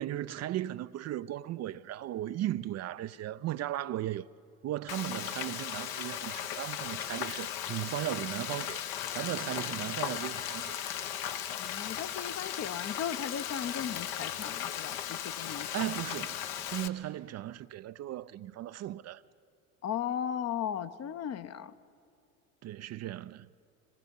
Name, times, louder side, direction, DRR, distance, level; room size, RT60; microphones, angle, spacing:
voice 1, 0.0-4.3 4.6-8.8 9.1-11.2 15.7-19.2 22.6-23.5, right 13 dB, 40° right, 0.5 m, -36 dB
Frying (food), 4.9-16.9, left 10 dB, 60° left, 1.1 m, -37 dB
voice 2, 9.5-9.9 11.6-15.7 19.8-21.7, left 9 dB, 40° left, 0.9 m, -37 dB
25.5 x 20.0 x 5.4 m
hypercardioid pair, 70°, 41 cm